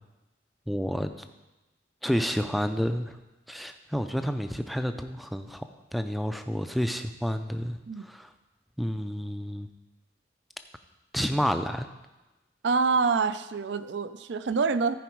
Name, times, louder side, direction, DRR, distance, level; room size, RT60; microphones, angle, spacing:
voice 1, 0.7-1.1 2.0-3.2 3.5-5.6 5.9-8.3 8.8-9.7 11.1-11.9, equal, ahead, 8 dB, 0.4 m, -30 dB
voice 2, 12.6-14.9, right 4 dB, 70° right, 12 dB, 0.5 m, -26 dB
14.0 x 5.0 x 4.6 m, 1.1 s
head